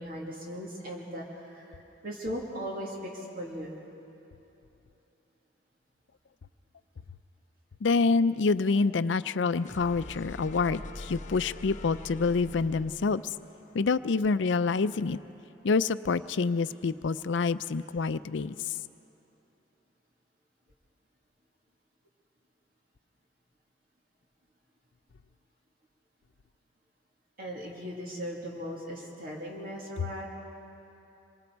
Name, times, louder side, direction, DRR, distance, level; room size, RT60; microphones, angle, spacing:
voice 1, 0.0-3.7 15.0-15.1 27.4-30.3, equal, 50° right, -3 dB, 2.4 m, -38 dB
voice 2, 7.8-13.2 13.7-15.2 15.6-18.5 30.0-30.1, left 4 dB, 85° left, 14 dB, 0.5 m, -27 dB
sound 1, 9.6-15.4, left 2 dB, 40° left, 0.8 m, -45 dB
26.5 x 24.0 x 4.7 m, 3.0 s
head